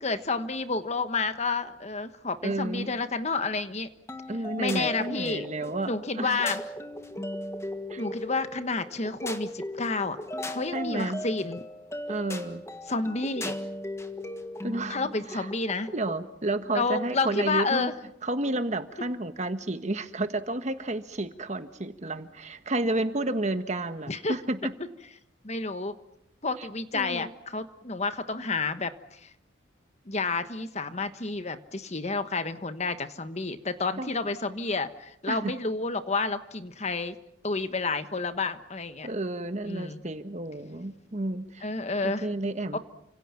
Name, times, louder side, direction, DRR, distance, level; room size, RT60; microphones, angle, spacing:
voice 1, 0.0-3.9 4.6-5.5 5.8-6.6 8.0-10.2 10.4-11.6 12.9-13.5 14.9-15.9 16.7-17.9 24.1-24.4 25.4-25.9 26.4-29.3 30.1-37.1 37.4-39.1 39.6-40.0 41.6-42.3 42.7-42.8, left 3 dB, 35° left, 10 dB, 1.3 m, -30 dB
voice 2, 2.4-2.9 4.3-6.4 7.9-8.0 10.7-11.2 12.1-12.6 14.6-15.0 15.3-15.5 15.9-17.9 18.2-24.7 26.6-26.7 26.9-27.3 34.0-34.2 35.3-35.4 39.0-41.6 42.0-42.8, right 2 dB, 40° right, 9 dB, 1.4 m, -31 dB
sound 1, 4.1-16.2, left 1 dB, 15° left, 1.6 m, -38 dB
30.0 x 26.5 x 5.9 m, 0.77 s
head